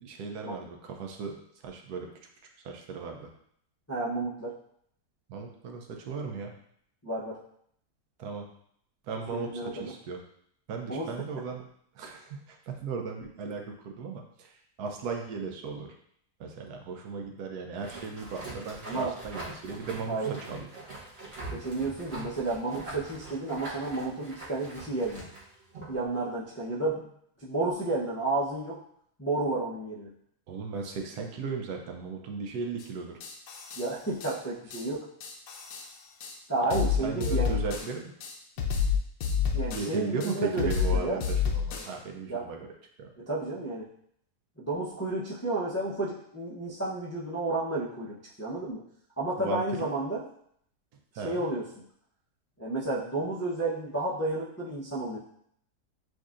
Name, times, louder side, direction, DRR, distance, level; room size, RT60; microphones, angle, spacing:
voice 1, 0.0-2.1 2.6-3.3 5.3-6.5 8.2-8.5 9.0-10.2 10.7-11.6 11.9-15.9 16.4-20.7 30.5-33.2 36.6-38.1 39.7-42.7 43.0-43.1 49.4-49.6 51.2-51.4, right 4 dB, 75° right, 2 dB, 1.2 m, -36 dB
voice 2, 3.9-4.5 7.0-7.4 9.2-9.9 10.9-11.1 18.8-19.1 20.1-20.3 21.5-25.2 25.9-27.1 27.4-28.8 29.2-30.1 33.8-35.1 36.5-37.6 39.5-41.2 42.3-42.4 43.2-43.9 44.6-48.8 49.2-50.3 51.2-51.6 52.6-55.2, right 2 dB, 25° left, -7 dB, 0.3 m, -31 dB
sound 1, 17.8-26.0, right 2 dB, 45° right, 1.2 m, -43 dB
sound 2, 32.8-32.9 33.2-33.9 34.2-34.3 34.7-34.8 35.2-35.9 36.2-36.3 36.7-37.9 38.2-39.9 40.2-41.9, left 6 dB, 90° left, 1.2 m, -29 dB
7.6 x 2.7 x 2.4 m, 0.68 s
omnidirectional pair, 1.7 m